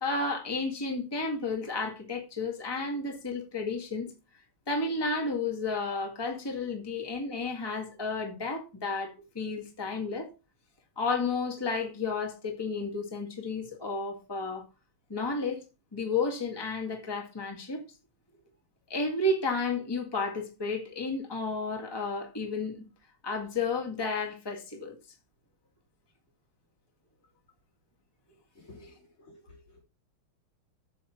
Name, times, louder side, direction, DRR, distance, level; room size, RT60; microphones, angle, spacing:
voice 1, 0.0-4.1 4.7-10.3 11.0-14.6 15.1-15.6 15.9-17.8 18.9-22.9 23.2-25.0, left 3 dB, 10° left, 1.9 m, -32 dB
voice 2, 28.5-29.6, left 2 dB, 70° left, 5.1 m, -52 dB
9.6 x 7.4 x 4.5 m
omnidirectional pair, 2.3 m